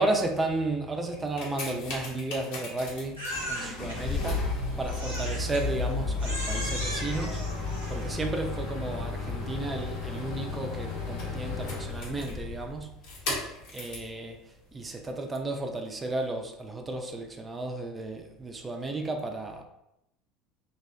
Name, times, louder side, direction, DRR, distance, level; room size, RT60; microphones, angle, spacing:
voice 1, 0.0-7.5 7.9-13.0 13.4-19.6, right 2 dB, 20° right, 0.4 m, -33 dB
sound 1, 1.1-14.1 14.9-15.0, left 3 dB, 60° left, 0.7 m, -33 dB
Crying sobbing, 3.2-4.0 4.9-5.6 6.2-8.3, equal, 90° right, 0.8 m, -37 dB
2.6 x 2.1 x 2.3 m
figure-of-eight pair, 70°, 0 cm